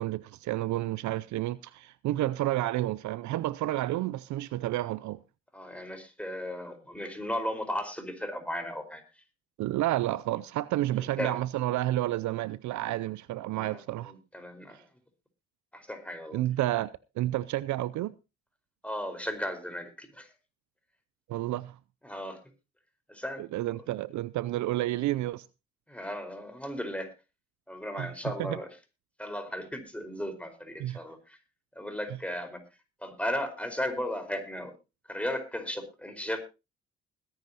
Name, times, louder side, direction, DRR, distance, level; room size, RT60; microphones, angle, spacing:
voice 1, 0.0-5.2 9.6-14.1 16.3-16.9 17.2-18.1 21.3-21.7 23.4-25.4 28.0-28.1 30.8-31.0, right 15 dB, 65° right, 0.6 m, -30 dB
voice 2, 5.5-9.0 11.0-11.3 13.6-14.9 15.7-16.4 18.8-20.3 22.0-22.4 23.1-23.4 25.9-27.1 27.7-28.7 29.2-31.4 31.7-32.6 33.0-34.7 35.1-36.4, left 1 dB, 5° left, 4.7 m, -35 dB
21.0 x 10.5 x 2.9 m
hypercardioid pair, 45°, 31 cm